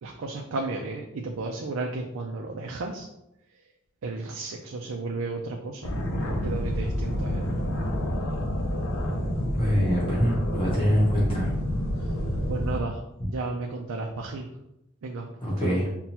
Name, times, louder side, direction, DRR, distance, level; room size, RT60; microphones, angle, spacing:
voice 1, 0.0-3.1 4.0-5.8 6.3-7.4 12.5-13.0 13.3-14.5 15.0-15.3 15.6-15.9, right 3 dB, 80° right, 1 dB, 0.4 m, -33 dB
sound 1, 5.8-12.8, equal, 80° left, 0.7 m, -28 dB
voice 2, 9.6-11.5 15.4-15.9, equal, 25° left, -6 dB, 0.8 m, -24 dB
5.7 x 2.2 x 2.8 m, 0.86 s
head